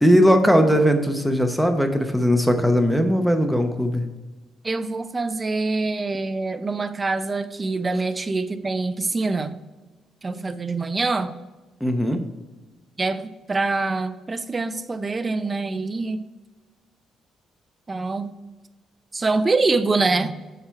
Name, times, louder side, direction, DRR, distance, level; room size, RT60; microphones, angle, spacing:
voice 1, 0.0-4.0 11.8-12.2, equal, ahead, 6 dB, 0.8 m, -19 dB
voice 2, 4.6-9.6 10.2-11.3 13.0-16.2 17.9-18.3 19.1-20.4, right 3 dB, 30° right, 11 dB, 0.5 m, -25 dB
6.6 x 4.4 x 4.6 m, 1.2 s
cardioid pair, 90°, 0 cm